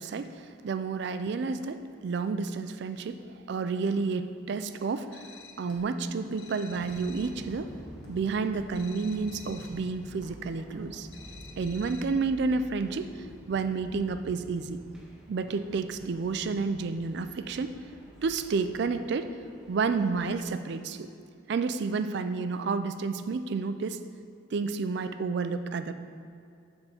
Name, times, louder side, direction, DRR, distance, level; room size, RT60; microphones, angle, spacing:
voice 1, 0.0-5.3 5.6-7.8 8.1-11.1 11.6-13.1 13.5-14.8 15.3-17.8 18.2-19.3 19.7-21.1 21.5-24.0 24.5-25.9, right 4 dB, 55° right, 10 dB, 0.3 m, -30 dB
sound 1, 5.1-5.8 6.4-7.5 8.7-9.9 11.1-12.3, left 6 dB, 55° left, 0.7 m, -50 dB
Walk footsteps, 5.6-5.9 6.2-6.5 6.8-7.1 7.4-8.2 8.5-8.7 9.1-9.3 9.6-9.8 10.1-10.4 10.7-10.8, right 1 dB, 75° left, 1.5 m, -51 dB
sound 2, 6.7-20.4, equal, 5° right, 0.7 m, -49 dB
7.3 x 3.7 x 6.3 m, 2.4 s
head